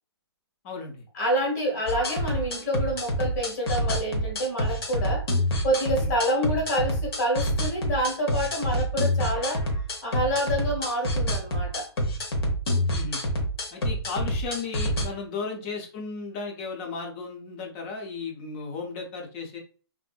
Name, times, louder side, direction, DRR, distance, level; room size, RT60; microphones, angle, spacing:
voice 1, 0.6-1.0 6.0-6.1 12.9-13.2 13.7-19.6, left 4 dB, 25° left, 2 dB, 0.6 m, -35 dB
voice 2, 1.1-5.2 5.6-9.6 10.0-11.9, equal, 45° left, 1 dB, 1.2 m, -27 dB
sound 1, 1.9-15.1, equal, 65° left, 0.9 m, -27 dB
2.6 x 2.5 x 2.3 m, 0.39 s
hypercardioid pair, 150°, 14 cm